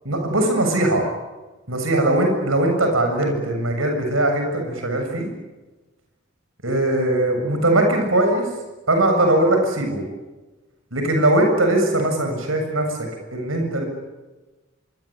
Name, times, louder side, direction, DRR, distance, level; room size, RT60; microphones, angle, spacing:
voice 1, 0.0-1.0 1.7-5.3 6.6-8.5 8.9-10.0 10.9-13.0 13.3-13.8, right 1 dB, 90° right, 4 dB, 7.4 m, -20 dB
25.5 x 25.0 x 8.9 m, 1.2 s
head